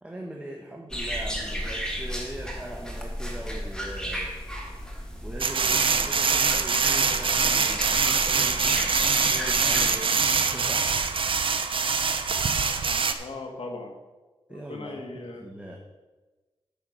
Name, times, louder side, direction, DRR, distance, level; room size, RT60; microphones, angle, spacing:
voice 1, 0.0-4.3 5.2-11.5 14.5-15.8, right 1 dB, 10° right, -1 dB, 1.3 m, -41 dB
sound 1, 0.9-10.0, equal, 5° left, 2.0 m, -34 dB
sound 2, 5.4-13.1, right 5 dB, 60° right, 0.7 m, -24 dB
voice 2, 13.2-14.0 14.5-15.5, left 2 dB, 75° left, 3 dB, 1.6 m, -38 dB
9.4 x 6.3 x 6.3 m, 1.2 s
wide cardioid pair, 85°, 10 cm